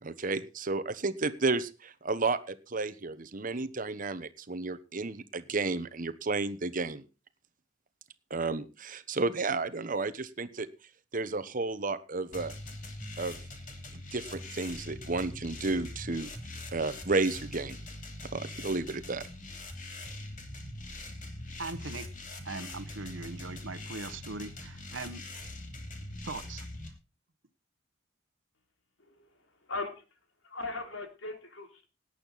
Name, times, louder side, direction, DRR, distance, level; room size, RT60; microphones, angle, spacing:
voice 1, 0.0-7.0 8.3-10.7 11.1-12.5 13.2-13.4 14.1-16.3 16.7-17.8 18.3-19.2, right 3 dB, 45° right, 1.1 m, -32 dB
sound 1, 12.3-26.9, left 2 dB, 45° left, 2.9 m, -43 dB
voice 2, 21.6-22.1 22.4-25.2 26.2-26.7, right 3 dB, 75° right, 1.2 m, -40 dB
voice 3, 29.6-30.0 30.4-31.9, left 3 dB, 80° left, 3.3 m, -38 dB
18.0 x 9.0 x 4.1 m
head